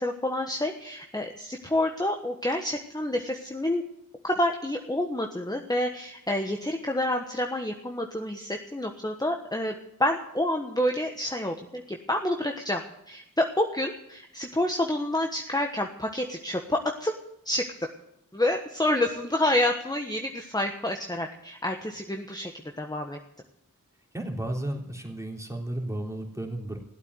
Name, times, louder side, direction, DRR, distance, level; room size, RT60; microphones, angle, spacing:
voice 1, 0.0-3.8 4.2-9.7 10.0-12.8 13.1-17.1 17.4-17.9 18.3-22.5 22.8-23.2, left 1 dB, 10° left, 3 dB, 1.3 m, -28 dB
voice 2, 24.1-26.8, right 1 dB, 10° right, 0 dB, 3.4 m, -33 dB
15.0 x 8.3 x 9.7 m, 0.79 s
cardioid pair, 40°, 34 cm